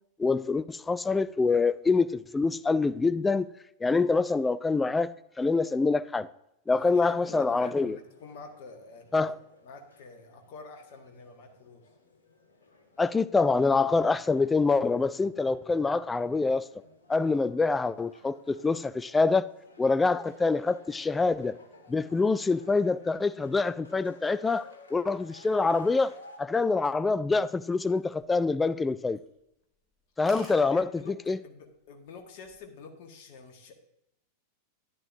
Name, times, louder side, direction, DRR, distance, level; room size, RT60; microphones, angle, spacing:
voice 1, 0.2-3.5 3.8-6.3 6.7-8.0 9.1-9.3 13.0-16.7 17.1-19.5 19.8-21.6 21.9-26.1 26.4-29.2 30.2-31.4, left 4 dB, 10° left, 0.3 m, -25 dB
voice 2, 6.8-9.3 9.6-11.9 30.5-33.7, left 4 dB, 50° left, 1.4 m, -47 dB
sound 1, 7.6-26.4, left 2 dB, 70° left, 1.4 m, -56 dB
sound 2, 27.8-28.8 29.1-29.4 29.7-29.8 30.0-30.1 30.3-30.6 31.5-31.8 32.2-32.6, right 1 dB, 5° right, 2.9 m, -47 dB
10.5 x 10.5 x 2.6 m
figure-of-eight pair, 90°, 0 cm